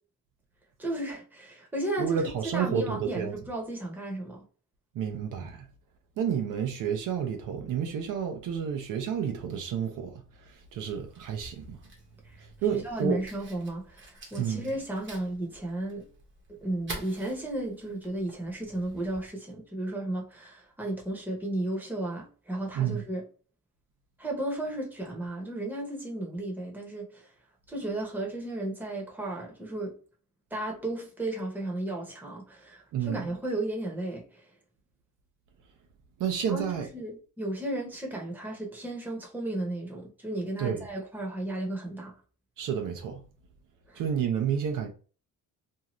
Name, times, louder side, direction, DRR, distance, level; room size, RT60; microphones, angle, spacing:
voice 1, 0.8-4.4 12.2-12.4 12.7-16.1 16.5-23.2 24.2-27.3 27.7-30.0 30.5-34.5 36.5-42.1 43.9-44.0, right 1 dB, 5° right, 0.8 m, -34 dB
voice 2, 2.0-3.4 4.9-5.7 6.2-11.8 12.4-13.2 14.4-14.7 22.7-23.0 32.9-33.3 36.2-36.9 40.6-40.9 42.6-43.2 44.0-44.9, right 7 dB, 70° right, 0.7 m, -30 dB
Fire, 10.5-19.3, right 2 dB, 35° right, 0.9 m, -48 dB
2.7 x 2.4 x 3.0 m
cardioid pair, 150°, 33 cm